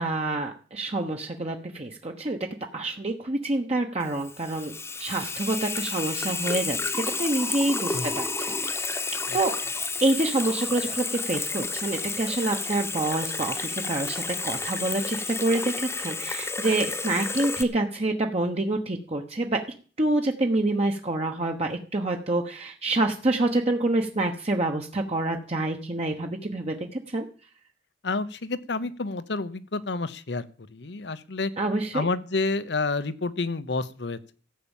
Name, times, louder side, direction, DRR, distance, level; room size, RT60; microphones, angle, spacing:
voice 1, 0.0-2.4 2.7-4.7 5.0-6.9 7.2-8.8 9.3-9.5 10.0-19.6 20.0-27.2 31.6-32.0, right 2 dB, 35° right, 2 dB, 1.2 m, -27 dB
Water tap faucet / Sink (filling or washing), 4.0-17.6, left 4 dB, 15° left, 1.1 m, -31 dB
voice 2, 28.0-31.5 31.9-34.3, left 3 dB, 75° left, 16 dB, 0.9 m, -29 dB
15.0 x 8.5 x 7.3 m, 0.41 s
head